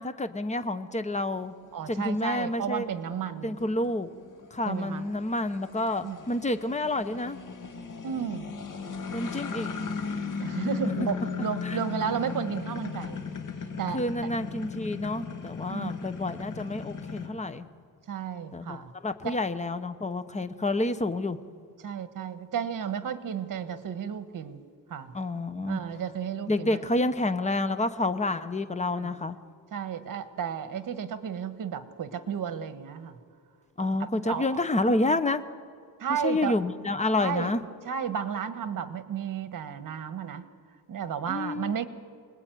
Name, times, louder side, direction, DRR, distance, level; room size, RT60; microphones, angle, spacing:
voice 1, 0.0-1.5 1.9-2.9 3.4-4.1 4.5-7.4 9.1-9.9 11.0-11.1 11.6-11.8 13.9-17.6 18.5-18.8 19.0-21.4 25.1-25.8 26.5-29.4 33.8-35.4 36.2-37.6 41.3-41.7, left 2 dB, 20° left, 11 dB, 1.0 m, -29 dB
sound 1, 1.2-17.3, left 5 dB, 55° left, 2.6 m, -37 dB
voice 2, 1.7-3.6 4.6-5.0 6.0-6.4 8.0-8.5 10.4-13.2 13.8-14.0 15.7-15.9 18.1-18.9 19.2-19.4 21.8-24.6 24.9-25.1 25.7-26.9 28.9-29.2 29.7-33.2 34.0-34.9 36.0-36.6 37.2-37.5 37.8-40.4 40.9-41.9, right 7 dB, 60° right, 11 dB, 1.4 m, -33 dB
28.5 x 20.0 x 9.3 m, 2.2 s
wide cardioid pair, 140°, 37 cm